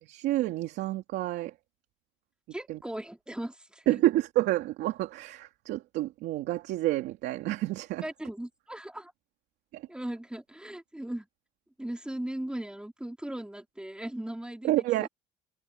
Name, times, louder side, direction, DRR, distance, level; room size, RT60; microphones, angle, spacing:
voice 1, 0.0-1.5 2.7-2.8 3.9-8.1 9.7-9.8 14.6-15.1, right 15 dB, 85° right, 2.9 m, -29 dB
voice 2, 2.5-4.0 8.0-9.1 9.9-11.3 11.8-14.7 15.0-15.1, right 1 dB, 5° right, 3.9 m, -38 dB
cardioid pair, 110°, 17 cm